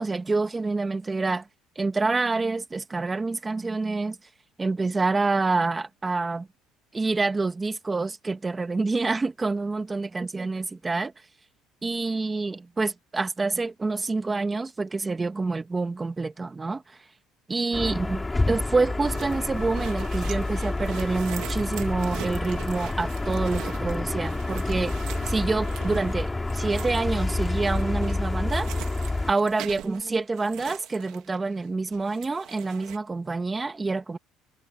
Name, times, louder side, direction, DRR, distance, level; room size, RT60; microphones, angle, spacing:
voice 1, 0.0-1.4 1.8-4.2 4.6-6.5 6.9-11.1 11.8-16.8 17.5-25.0 25.3-28.7 29.3-34.2, right 3 dB, 15° right, 1.8 m, -27 dB
sound 1, 17.7-29.3, left 2 dB, 10° left, 3.9 m, -28 dB
sound 2, 19.0-31.7 31.9-33.0, right 14 dB, 65° right, 3.0 m, -43 dB
cardioid pair, 135°, 0 cm